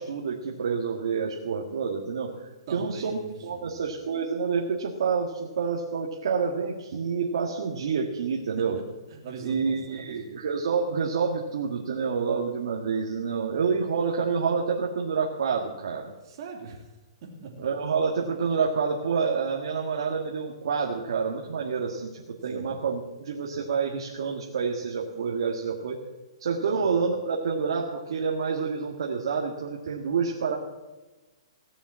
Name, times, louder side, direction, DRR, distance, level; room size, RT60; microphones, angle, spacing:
voice 1, 0.0-2.3 2.7-3.2 3.4-8.8 9.4-16.1 17.6-26.0 26.4-30.6, right 5 dB, 70° right, -2 dB, 1.7 m, -28 dB
voice 2, 2.7-3.9 8.6-8.7 9.1-10.4 16.2-16.9 17.2-17.6 22.5-22.8 26.6-26.9, right 4 dB, 45° right, 0 dB, 3.1 m, -42 dB
16.5 x 7.1 x 7.5 m, 1.1 s
hypercardioid pair, 155°, 3 cm